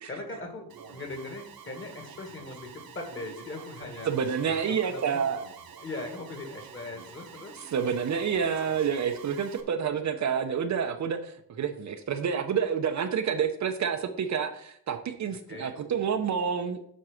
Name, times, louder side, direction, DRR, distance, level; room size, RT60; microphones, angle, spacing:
voice 1, 0.1-4.1 4.4-5.2 5.8-7.6 15.5-15.8, left 2 dB, 30° left, 3 dB, 2.0 m, -40 dB
Alarm, 0.7-9.6, right 7 dB, 65° right, 1.1 m, -48 dB
voice 2, 4.0-5.4 7.7-16.8, right 7 dB, 50° right, 7 dB, 0.7 m, -28 dB
7.6 x 4.6 x 6.3 m, 0.68 s
cardioid pair, 150°, 38 cm